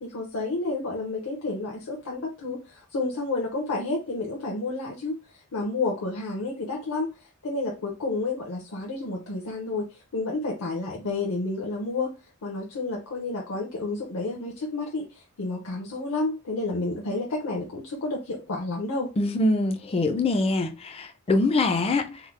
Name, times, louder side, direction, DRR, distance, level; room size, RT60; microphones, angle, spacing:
voice 1, 0.0-5.2 5.5-7.1 7.4-12.1 12.4-19.1, left 3 dB, 70° left, 0.7 m, -30 dB
voice 2, 19.2-22.2, left 2 dB, 25° left, 0.4 m, -24 dB
3.6 x 2.0 x 3.1 m
head